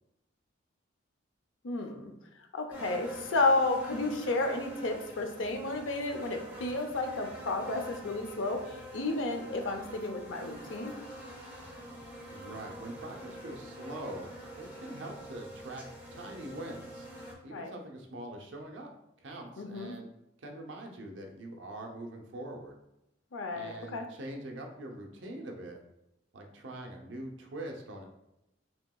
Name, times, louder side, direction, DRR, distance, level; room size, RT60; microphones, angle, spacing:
voice 1, 1.6-2.1 2.5-8.6 8.9-10.9 17.5-17.7 19.6-19.9 23.3-24.1, left 2 dB, 85° left, 4 dB, 0.6 m, -32 dB
sound 1, 2.7-17.3, equal, 10° right, 1.0 m, -46 dB
voice 2, 12.3-14.3 14.6-15.8 16.1-17.1 17.4-18.9 19.2-20.1 20.4-22.7 23.5-25.8 26.3-28.0, right 1 dB, 70° right, 2 dB, 0.7 m, -43 dB
5.7 x 2.9 x 2.3 m, 0.87 s
head